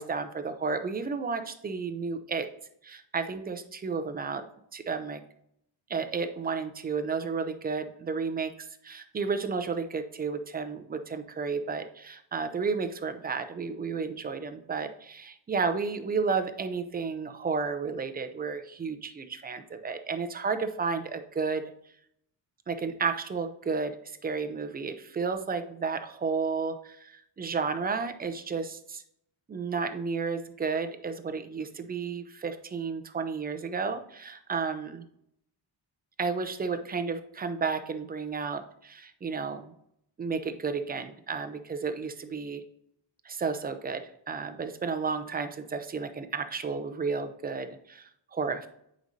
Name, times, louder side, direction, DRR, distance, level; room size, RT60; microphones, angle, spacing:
voice 1, 0.0-2.5 2.8-4.4 4.7-5.2 5.9-21.6 22.7-29.0 29.5-35.0 36.2-39.7 40.2-42.6 43.2-48.7, right 5 dB, 20° right, 8 dB, 0.5 m, -32 dB
9.1 x 5.2 x 2.7 m, 0.73 s
cardioid pair, 170°, 43 cm